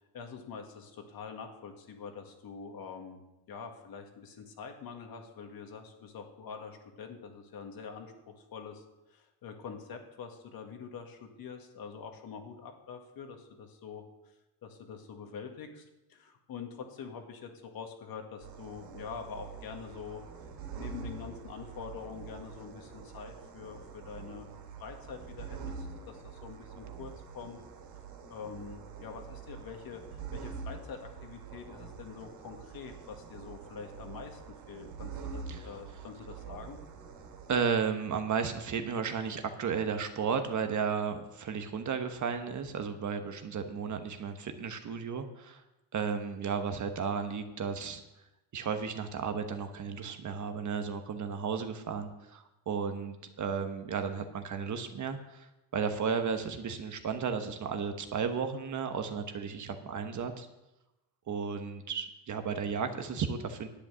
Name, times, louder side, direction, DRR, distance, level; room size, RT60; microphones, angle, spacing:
voice 1, 0.0-3.2 3.5-8.8 9.1-14.0 14.6-20.2 20.8-24.5 24.8-27.6 28.3-34.4 34.7-36.8, left 6 dB, 50° left, 4 dB, 2.0 m, -45 dB
sound 1, 18.4-37.6, right 6 dB, 60° right, 2.7 m, -45 dB
voice 2, 37.5-45.6 45.9-48.0 48.5-60.5 61.3-63.7, right 6 dB, 40° right, 7 dB, 1.2 m, -34 dB
10.5 x 8.4 x 6.3 m, 0.96 s
cardioid pair, 110°, 47 cm